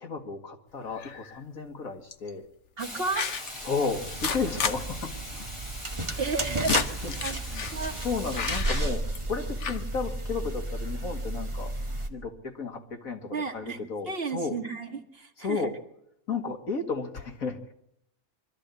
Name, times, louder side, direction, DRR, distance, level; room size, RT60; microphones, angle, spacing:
voice 1, 0.0-2.5 3.6-5.5 6.0-6.2 7.0-7.2 7.5-7.7 8.0-11.7 12.1-14.6 15.4-15.8 16.3-17.7, left 4 dB, 85° left, 4 dB, 2.5 m, -33 dB
sound 1, 1.0-1.4 2.1-2.3 3.1-3.6 4.0-4.8 5.0-5.1 5.4-5.5 6.2-7.8 8.3-9.3 9.6-9.8, left 6 dB, 60° left, 1.3 m, -32 dB
Hiss, 2.8-8.6, left 1 dB, 20° left, 3.7 m, -42 dB
voice 2, 2.8-3.3 6.2-6.8 7.2-7.4 7.7-8.0 13.3-13.8 14.1-15.6, right 4 dB, 45° right, 1 dB, 2.2 m, -32 dB
sound 2, 3.9-12.1, right 2 dB, 20° right, 1.8 m, -33 dB
24.0 x 13.5 x 8.4 m, 0.77 s
omnidirectional pair, 1.4 m